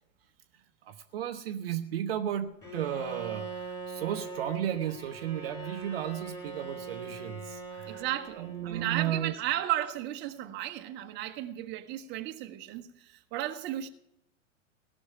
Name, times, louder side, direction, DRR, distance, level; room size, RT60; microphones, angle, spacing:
voice 1, 0.8-8.0 8.4-9.3, right 10 dB, 50° right, 0.9 m, -34 dB
Bowed string instrument, 2.6-8.9, right 4 dB, 5° left, 3.0 m, -42 dB
voice 2, 7.9-13.9, right 13 dB, 25° right, 1.0 m, -34 dB
17.5 x 6.4 x 9.0 m
figure-of-eight pair, 95°, 39 cm